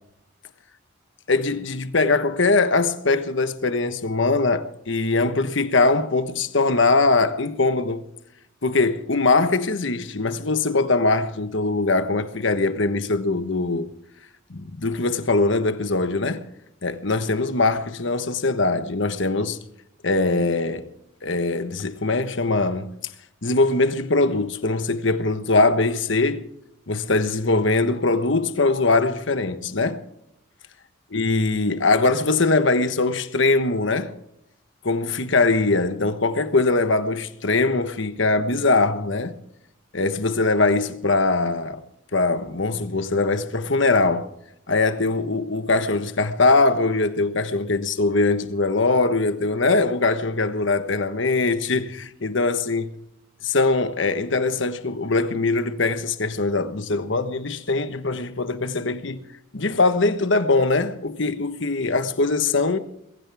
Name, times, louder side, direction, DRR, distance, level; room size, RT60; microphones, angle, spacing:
voice 1, 1.3-8.0 8.6-13.9 14.5-16.4 16.8-19.6 20.0-20.9 21.2-23.0 23.4-26.4 26.9-30.0 31.1-34.1 34.8-39.3 39.9-41.8 42.1-44.3 44.7-52.9 53.4-59.2 59.5-62.8, left 3 dB, 65° left, 1.3 m, -22 dB
21.5 x 16.0 x 3.6 m
head